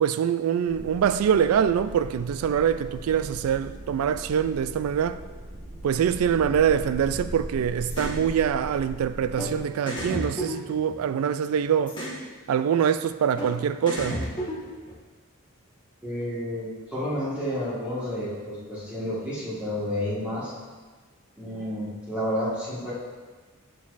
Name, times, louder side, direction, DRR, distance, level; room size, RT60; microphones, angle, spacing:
voice 1, 0.0-5.2 5.8-12.0 12.5-14.2, right 8 dB, 90° right, 13 dB, 0.3 m, -24 dB
sound 1, 0.7-9.6, equal, 75° right, 1.6 m, -39 dB
sound 2, 7.9-8.2 9.4-9.5 9.9-11.3 11.9-12.2 13.4-13.5 13.9-15.0, equal, 25° left, 1.3 m, -32 dB
voice 2, 16.0-20.5 21.4-22.9, equal, 5° right, -10 dB, 1.5 m, -30 dB
7.1 x 6.4 x 2.5 m, 1.4 s
head